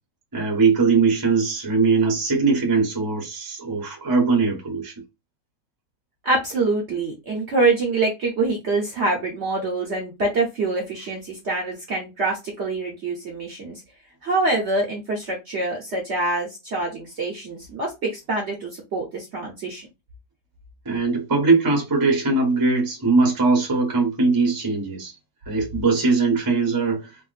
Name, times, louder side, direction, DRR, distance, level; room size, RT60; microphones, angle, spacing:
voice 1, 0.3-4.9 20.8-25.1 25.5-27.1, right 4 dB, 20° right, 0.6 m, -20 dB
voice 2, 6.2-13.8 14.2-19.9, right 3 dB, 55° right, 0.8 m, -25 dB
3.4 x 2.3 x 2.4 m
omnidirectional pair, 1.8 m